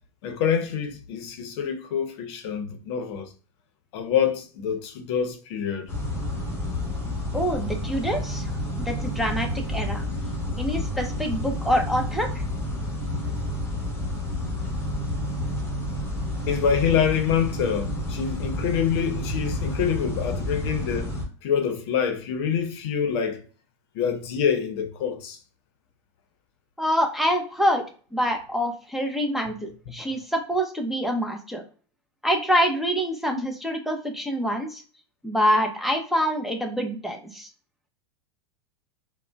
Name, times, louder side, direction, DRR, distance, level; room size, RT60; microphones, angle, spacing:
voice 1, 0.2-3.3 3.9-5.9 16.5-21.1 21.4-23.4 23.9-25.4 29.9-30.0, left 7 dB, 65° left, 0.6 m, -26 dB
sound 1, 5.9-21.2, left 1 dB, 15° left, 1.1 m, -30 dB
voice 2, 7.3-8.5 8.8-10.0 10.6-12.3 26.8-27.8 28.1-31.6 32.2-34.8 35.2-37.5, equal, ahead, 0.5 m, -25 dB
3.6 x 2.1 x 2.2 m
hypercardioid pair, 115°, 15 cm